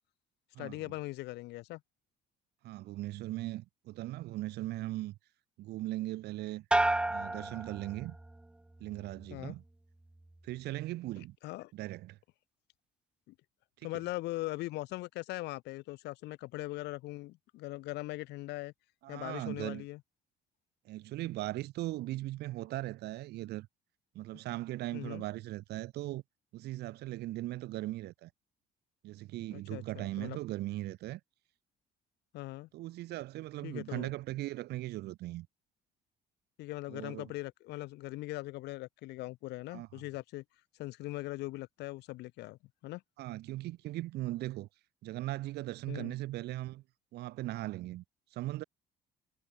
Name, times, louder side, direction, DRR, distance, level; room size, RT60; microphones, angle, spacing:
voice 1, 0.6-1.8 9.3-9.5 11.4-11.7 13.3-13.4 13.8-18.7 19.1-20.0 24.9-25.2 29.5-30.4 32.3-32.7 33.6-34.1 36.6-40.4 40.8-43.0 45.9-46.1, left 19 dB, 85° left, 4.7 m, -40 dB
voice 2, 2.6-5.2 5.6-6.6 7.1-8.2 8.8-9.6 10.4-11.4 11.7-12.2 19.0-19.8 20.8-23.7 24.1-26.2 26.5-28.3 29.0-31.2 32.7-35.5 36.9-37.3 39.7-39.9 43.2-44.7 45.0-46.8 47.1-48.0 48.3-48.6, right 16 dB, 80° right, 2.7 m, -39 dB
sound 1, 6.7-8.4 8.8-9.4, right 1 dB, 5° right, 0.4 m, -32 dB
cardioid pair, 110°, 17 cm